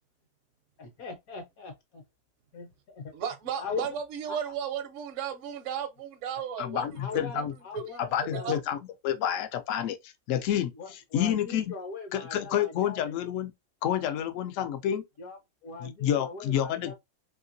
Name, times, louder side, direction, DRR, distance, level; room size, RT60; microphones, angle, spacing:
voice 1, 0.8-2.0 2.5-3.1 3.5-3.9 4.3-4.5 6.7-8.5 10.8-13.1 15.2-16.9, left 4 dB, 65° left, 1.0 m, -40 dB
voice 2, 3.1-7.4 7.7-8.6, right 8 dB, 65° right, 0.7 m, -35 dB
voice 3, 6.6-7.5 8.0-8.8 9.0-11.7 12.1-13.5 13.8-15.0 15.8-16.9, left 10 dB, 90° left, 0.6 m, -29 dB
2.9 x 2.8 x 2.5 m
omnidirectional pair, 1.9 m